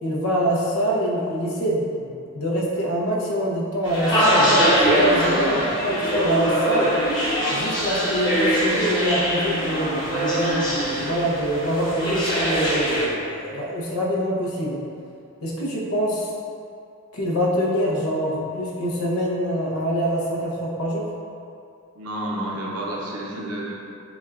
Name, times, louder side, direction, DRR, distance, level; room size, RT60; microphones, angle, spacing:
voice 1, 0.0-6.9 7.5-14.8 15.4-16.3 17.1-21.0, equal, 85° left, -4 dB, 0.8 m, -25 dB
sound 1, 3.8-13.1, equal, 20° left, 0.8 m, -22 dB
voice 2, 21.9-23.7, right 1 dB, 85° right, -3 dB, 0.7 m, -30 dB
7.0 x 2.4 x 2.4 m, 2.5 s
head